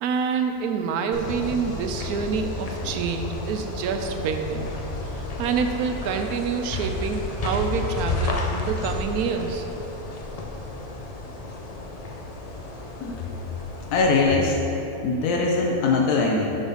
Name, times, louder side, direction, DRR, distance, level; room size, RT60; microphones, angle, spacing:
voice 1, 0.0-4.7 5.1-9.6, right 6 dB, 80° right, 6 dB, 1.1 m, -27 dB
sound 1, 1.1-14.3, left 2 dB, 60° left, 0.4 m, -32 dB
voice 2, 13.9-14.6 15.0-16.6, left 3 dB, 85° left, -1 dB, 1.2 m, -21 dB
7.1 x 4.0 x 5.6 m, 3.0 s
omnidirectional pair, 1.6 m